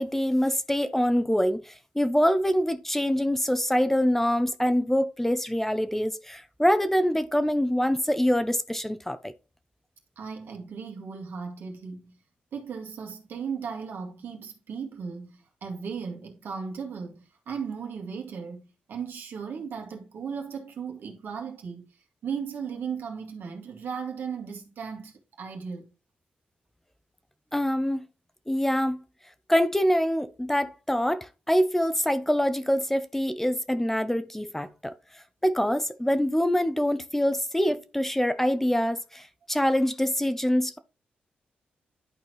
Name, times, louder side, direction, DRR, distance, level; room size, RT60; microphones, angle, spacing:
voice 1, 0.0-9.3 27.5-28.1 28.5-29.0 29.5-34.9 35.4-40.8, equal, 10° left, 0.6 m, -25 dB
voice 2, 10.2-12.2 12.5-21.9 22.2-25.8, right 6 dB, 80° right, 1.9 m, -36 dB
11.0 x 4.4 x 3.1 m
cardioid pair, 65°, 4 cm